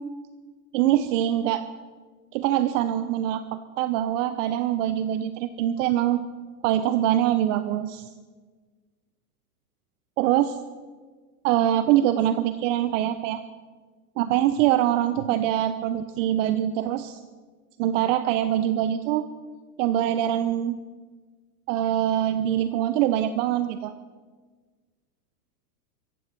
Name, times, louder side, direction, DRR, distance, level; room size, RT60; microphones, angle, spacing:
voice 1, 0.7-1.6 2.3-6.2 6.6-8.1 10.2-10.6 11.4-13.4 14.2-17.2 17.8-19.3 19.8-20.8 21.7-23.9, right 12 dB, 50° right, 11 dB, 0.9 m, -24 dB
16.0 x 15.0 x 6.0 m, 1.4 s
hypercardioid pair, 125°, 47 cm